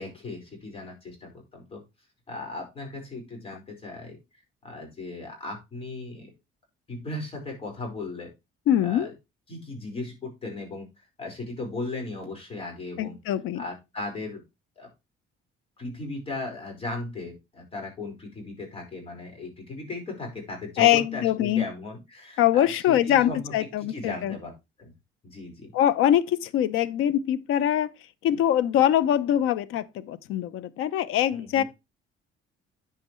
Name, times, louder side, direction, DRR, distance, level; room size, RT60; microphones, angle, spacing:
voice 1, 0.0-1.8 2.3-4.2 4.6-6.3 6.9-8.3 8.8-9.1 9.5-13.2 13.5-14.4 14.8-14.9 15.8-23.5 23.9-24.5 24.8-24.9 25.2-25.7 31.3-31.6, left 2 dB, 25° left, 4.8 m, -37 dB
voice 2, 8.7-9.1 13.0-13.6 20.8-21.7 22.4-24.4 25.7-27.9 28.2-31.6, left 11 dB, 85° left, 0.8 m, -23 dB
9.6 x 7.8 x 3.1 m
cardioid pair, 165°, 21 cm